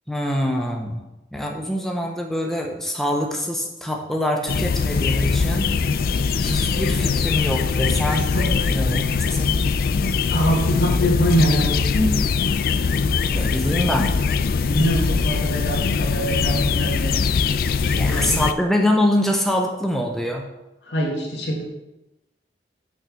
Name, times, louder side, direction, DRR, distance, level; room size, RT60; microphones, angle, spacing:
voice 1, 0.1-1.0 1.3-5.7 6.4-8.3 8.7-9.6 13.3-14.1 18.0-20.5, left 1 dB, ahead, 1 dB, 0.8 m, -24 dB
sound 1, 4.5-18.5, left 5 dB, 55° left, 0.3 m, -21 dB
voice 2, 10.3-12.1 14.7-17.2 17.6-18.4 20.8-21.7, equal, 85° left, -1 dB, 2.0 m, -23 dB
6.1 x 5.9 x 6.2 m, 0.96 s
head